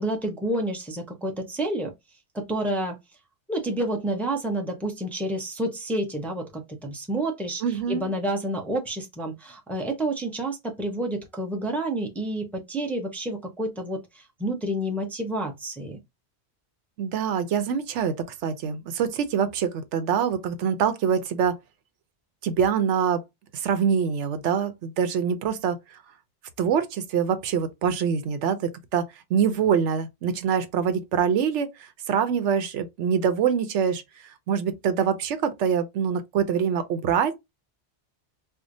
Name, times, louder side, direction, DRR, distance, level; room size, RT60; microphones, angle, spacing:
voice 1, 0.0-1.9 2.3-3.0 3.5-16.0, right 1 dB, ahead, 0.6 m, -29 dB
voice 2, 7.6-8.1 17.0-18.2 18.4-21.6 22.4-23.2 23.5-25.8 26.6-34.0 34.5-37.4, right 7 dB, 85° right, 0.9 m, -25 dB
4.7 x 2.1 x 2.6 m
omnidirectional pair, 1.2 m